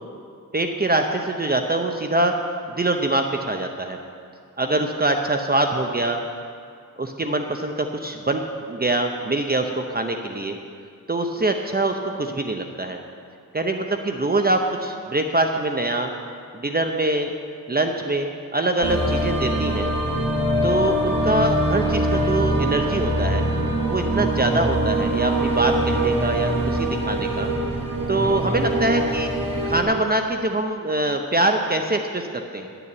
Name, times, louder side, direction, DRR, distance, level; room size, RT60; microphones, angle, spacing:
voice 1, 0.5-2.3 2.7-4.0 4.6-6.2 7.0-10.6 11.1-13.0 13.5-16.1 16.5-17.3 17.7-19.9 20.6-23.5 23.9-27.5 28.1-29.3 29.6-32.7, right 2 dB, 30° right, 4 dB, 0.7 m, -24 dB
sound 1, 18.8-29.8, right 1 dB, 85° right, 1.7 m, -23 dB
12.0 x 6.9 x 8.6 m, 2.3 s
wide cardioid pair, 105°, 33 cm